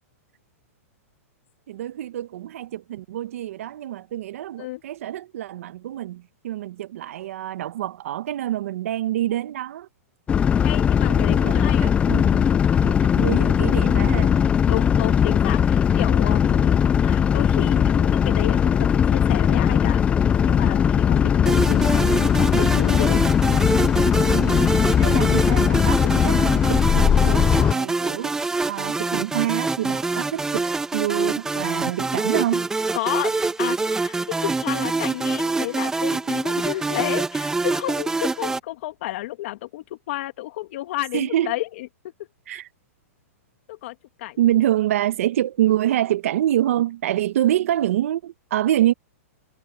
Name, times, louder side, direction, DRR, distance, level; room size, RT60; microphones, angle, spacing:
voice 1, 1.7-9.9 11.1-12.4 12.8-14.3 24.2-24.7 25.0-28.3 28.7-30.6 30.9-32.7 41.1-41.5 42.5-42.7 44.4-48.9, right 12 dB, 65° right, 1.4 m, -26 dB
sound 1, 10.3-27.7, left 8 dB, 15° left, 0.5 m, -19 dB
voice 2, 10.6-11.9 14.7-20.0 20.4-23.2 25.0-25.3 32.9-41.9 43.7-44.4, left 17 dB, 55° left, 2.3 m, -31 dB
sound 2, 21.5-38.6, right 3 dB, 5° right, 1.3 m, -25 dB
hypercardioid pair, 145°, 8 cm